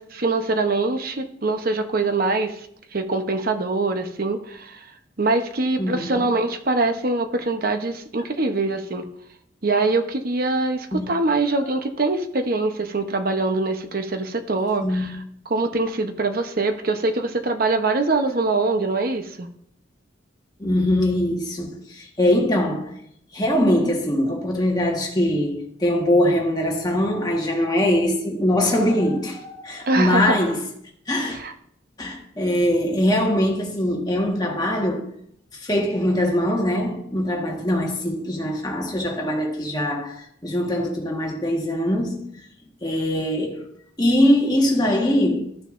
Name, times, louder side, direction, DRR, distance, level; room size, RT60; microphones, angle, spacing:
voice 1, 0.0-2.7 2.9-4.8 5.2-9.1 9.6-15.1 15.5-19.5 29.9-30.4 31.3-31.5, right 3 dB, 50° right, 0.9 m, -23 dB
voice 2, 5.8-6.3 10.9-11.1 14.8-15.1 20.6-22.9 23.3-30.6 31.1-31.4 32.0-35.1 35.6-42.3 42.8-43.7 44.0-45.5, left 1 dB, 20° left, 1.5 m, -22 dB
13.5 x 6.5 x 2.6 m
head